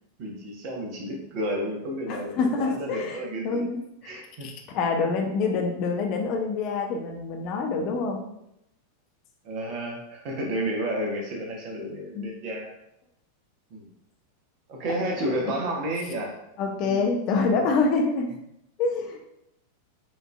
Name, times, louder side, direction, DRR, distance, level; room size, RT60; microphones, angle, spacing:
voice 1, 0.2-3.7 4.0-4.5 9.4-12.7 13.7-13.9 14.7-16.4 16.8-17.1, right 1 dB, 45° right, 0 dB, 0.9 m, -31 dB
voice 2, 2.1-3.8 4.0-8.2 12.2-12.3 14.9-15.5 16.6-18.3 18.8-19.2, left 4 dB, 40° left, 2 dB, 0.5 m, -27 dB
5.1 x 2.6 x 2.3 m, 0.80 s
figure-of-eight pair, 90°, 0 cm